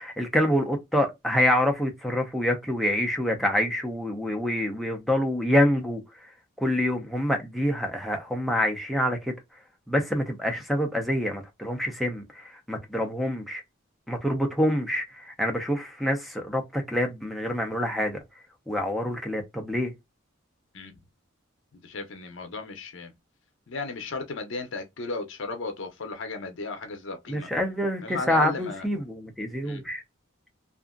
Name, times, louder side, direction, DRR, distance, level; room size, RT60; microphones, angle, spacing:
voice 1, 0.0-6.3 6.6-9.3 9.9-13.6 14.1-18.2 18.7-19.9 27.3-30.0, equal, ahead, 0.6 m, -26 dB
voice 2, 21.7-23.1 23.7-27.5 28.0-28.8 29.6-29.8, left 3 dB, 65° left, 0.6 m, -35 dB
2.7 x 2.5 x 2.4 m
head